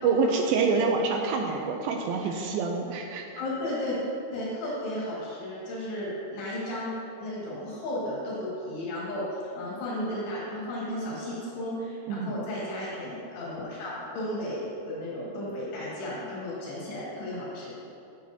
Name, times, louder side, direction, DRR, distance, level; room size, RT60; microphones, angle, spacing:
voice 1, 0.0-3.3 12.1-12.4, right 4 dB, 85° right, 2 dB, 2.2 m, -26 dB
voice 2, 3.4-4.0 4.3-6.9 7.2-9.2 9.6-17.8, left 1 dB, 90° left, -7 dB, 4.3 m, -34 dB
13.5 x 7.3 x 2.8 m, 2.6 s
omnidirectional pair, 4.7 m